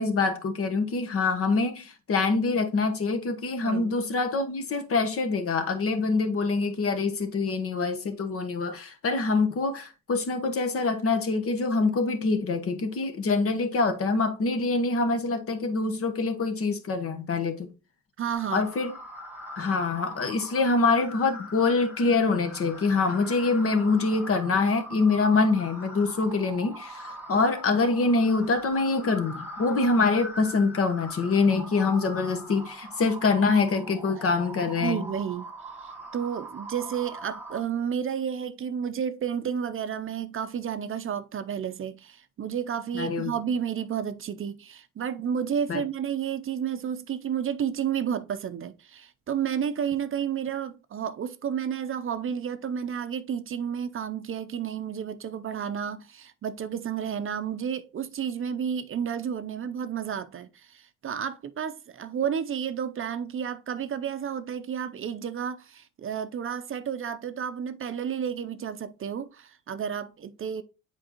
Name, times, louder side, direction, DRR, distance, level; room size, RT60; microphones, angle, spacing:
voice 1, 0.0-17.7 18.5-18.9 19.6-35.0 42.9-43.3 45.7-45.8, left 3 dB, 50° left, 1.1 m, -25 dB
voice 2, 3.6-3.9 18.2-18.7 34.8-35.5 35.8-70.6, right 8 dB, 45° right, 0.6 m, -31 dB
sound 1, 18.3-37.6, equal, 5° right, 1.8 m, -42 dB
7.7 x 4.5 x 2.9 m
cardioid pair, 90°, 30 cm